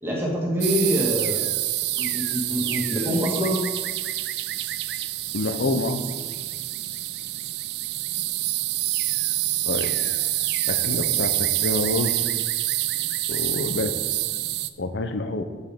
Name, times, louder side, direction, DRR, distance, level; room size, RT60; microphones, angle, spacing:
voice 1, 0.0-1.4 2.0-3.6, equal, 10° right, -3 dB, 1.6 m, -25 dB
sound 1, 0.6-14.7, right 16 dB, 60° right, 0.3 m, -27 dB
voice 2, 5.3-6.0 9.6-9.9 10.7-12.2 13.3-13.9 14.8-15.4, left 2 dB, 70° left, 8 dB, 0.7 m, -27 dB
8.1 x 5.4 x 5.1 m, 1.5 s
head